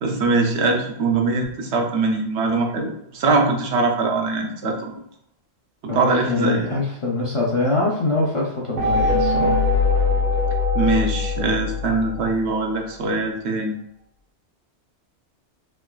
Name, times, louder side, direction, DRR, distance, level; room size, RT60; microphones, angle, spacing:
voice 1, 0.0-4.9 5.8-6.6 10.7-13.7, right 3 dB, 75° right, 1 dB, 0.9 m, -22 dB
voice 2, 5.9-9.6, left 2 dB, 50° left, -5 dB, 0.3 m, -24 dB
sound 1, 8.8-12.5, left 3 dB, 55° right, 0.6 m, -21 dB
3.2 x 2.8 x 2.3 m, 0.76 s
omnidirectional pair, 1.2 m